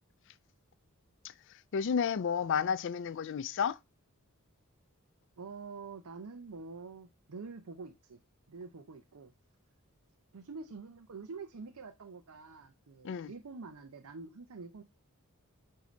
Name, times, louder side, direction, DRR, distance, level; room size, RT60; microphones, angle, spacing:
voice 1, 1.7-3.8 13.0-13.3, left 7 dB, 55° left, 0.4 m, -31 dB
voice 2, 5.4-8.2 8.5-9.3 10.3-14.8, right 4 dB, 70° right, 0.7 m, -46 dB
8.3 x 2.8 x 5.0 m
head